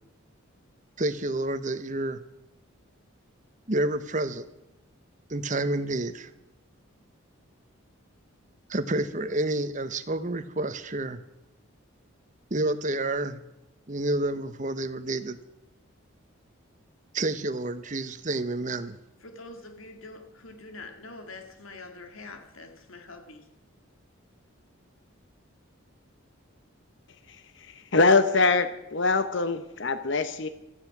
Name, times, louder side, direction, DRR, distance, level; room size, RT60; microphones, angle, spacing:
voice 1, 1.0-2.2 3.7-4.4 5.3-6.3 8.7-11.2 12.5-13.4 13.9-15.4 17.1-19.0, right 2 dB, 35° right, 1.0 m, -29 dB
voice 2, 19.2-23.5, left 3 dB, 70° left, 2.1 m, -45 dB
voice 3, 27.3-30.5, left 3 dB, 55° left, 0.9 m, -24 dB
16.5 x 14.0 x 6.0 m
head